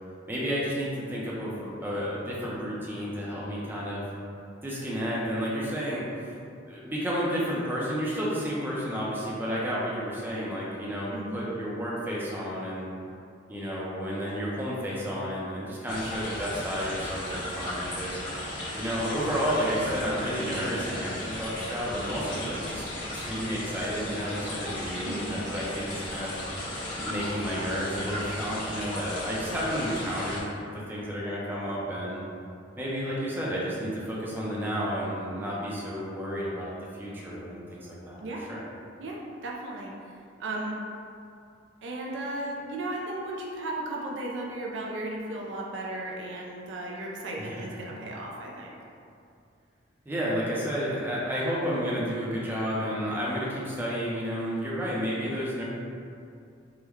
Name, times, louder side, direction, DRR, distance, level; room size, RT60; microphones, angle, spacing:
voice 1, 0.3-4.0 4.6-6.0 6.7-12.9 13.5-18.2 18.8-22.8 23.1-26.3 27.0-30.5 30.9-32.2 32.8-37.8 38.1-38.6 47.4-47.6 50.1-55.6, equal, 10° right, -6 dB, 0.5 m, -31 dB
sound 1, 15.9-30.4, left 1 dB, 75° left, 1.4 m, -36 dB
voice 2, 25.1-25.4 38.2-38.5 39.0-39.9 40.4-40.8 41.8-48.8, right 1 dB, 75° right, -1 dB, 0.4 m, -35 dB
3.5 x 2.1 x 3.0 m, 2.5 s
head